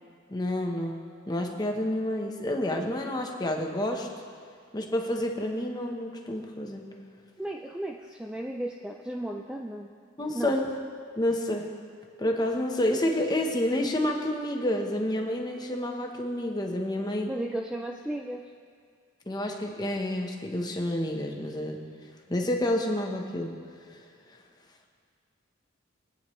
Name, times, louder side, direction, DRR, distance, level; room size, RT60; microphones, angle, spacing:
voice 1, 0.3-4.1 4.7-6.8 10.2-10.7 11.2-11.7 12.2-17.3 19.3-21.8 22.3-23.5 23.9-24.0, left 1 dB, 20° left, 2 dB, 1.0 m, -29 dB
voice 2, 7.4-9.9 10.3-10.5 17.3-18.4, right 1 dB, 5° right, 1 dB, 0.3 m, -34 dB
22.0 x 9.3 x 3.2 m, 2.1 s
head